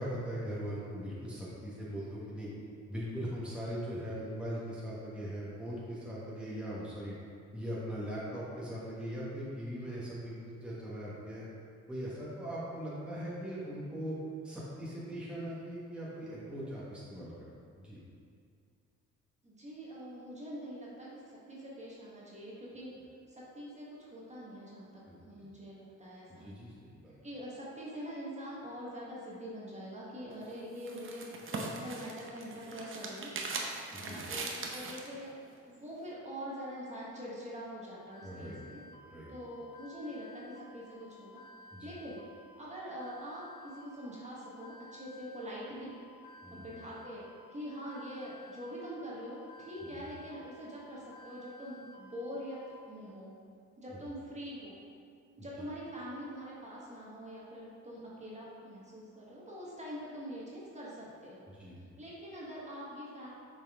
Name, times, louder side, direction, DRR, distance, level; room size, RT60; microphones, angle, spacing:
voice 1, 0.0-2.5 2.9-7.1 7.5-11.5 11.9-14.2 14.4-17.3 17.8-18.0 25.1-25.2 26.3-27.1 33.9-34.2 38.2-38.6 39.0-39.3 41.7-41.9 46.4-46.8 49.8-50.1 53.9-54.0 61.5-61.7, equal, 5° right, -8 dB, 1.4 m, -40 dB
voice 2, 19.4-22.9 23.3-26.4 27.2-33.3 33.9-35.3 35.7-38.8 39.3-41.4 41.8-42.2 42.6-45.9 46.5-47.2 47.5-52.6 52.9-53.3 53.8-54.8 55.4-61.4 62.0-63.3, equal, 25° right, -6 dB, 1.6 m, -44 dB
sound 1, 30.3-35.1, right 3 dB, 45° right, 0.8 m, -40 dB
sound 2, 38.1-52.7, left 2 dB, 25° left, 1.3 m, -55 dB
7.0 x 4.2 x 3.7 m, 2.3 s
cardioid pair, 90°, 30 cm